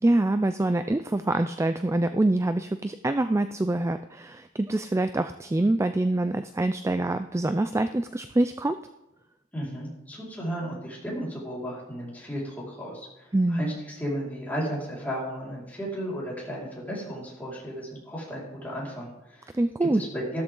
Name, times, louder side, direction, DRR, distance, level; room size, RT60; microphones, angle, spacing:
voice 1, 0.0-8.8 13.3-13.7 19.5-20.0, right 2 dB, 15° right, 10 dB, 0.3 m, -25 dB
voice 2, 9.5-19.6 19.9-20.4, equal, 10° left, -6 dB, 4.8 m, -34 dB
14.0 x 13.0 x 3.8 m, 0.91 s
head